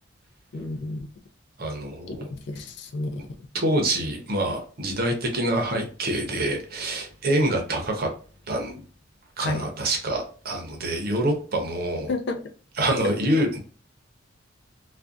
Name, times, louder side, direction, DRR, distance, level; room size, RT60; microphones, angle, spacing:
voice 1, 0.5-1.1 2.1-3.2 9.4-9.7 12.1-12.4, left 2 dB, 60° left, 6 dB, 0.4 m, -31 dB
voice 2, 1.6-2.3 3.5-8.1 8.5-8.8 9.4-12.1 12.8-13.6, right 1 dB, 50° right, 3 dB, 0.6 m, -26 dB
2.5 x 2.2 x 2.3 m, 0.39 s
head